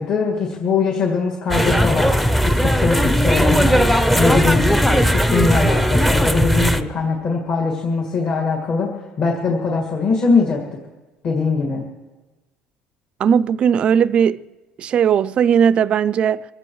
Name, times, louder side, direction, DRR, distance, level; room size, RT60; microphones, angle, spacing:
voice 1, 0.0-2.1 2.4-3.8 4.1-8.9 9.2-10.6 11.2-11.8, left 4 dB, 45° left, 1.9 m, -21 dB
sound 1, 1.5-6.8, equal, 5° left, 0.6 m, -17 dB
voice 2, 13.2-14.4 14.8-16.5, right 8 dB, 40° right, 0.4 m, -17 dB
24.5 x 15.0 x 3.1 m
cardioid pair, 140°, 3 cm